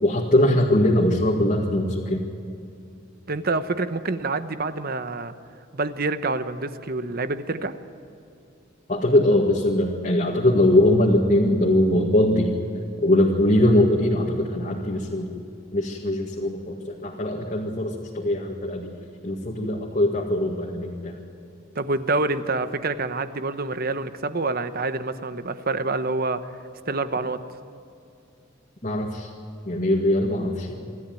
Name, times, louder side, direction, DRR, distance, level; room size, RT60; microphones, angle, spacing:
voice 1, 0.0-2.2 8.9-12.5 13.0-15.3 15.7-18.9 19.2-21.2 28.8-29.3 29.7-30.8, left 1 dB, 40° left, -2 dB, 2.0 m, -21 dB
voice 2, 3.3-5.3 5.7-7.7 21.7-26.4 26.9-27.4, right 3 dB, 50° right, 11 dB, 1.0 m, -27 dB
26.0 x 13.0 x 9.2 m, 2.6 s
head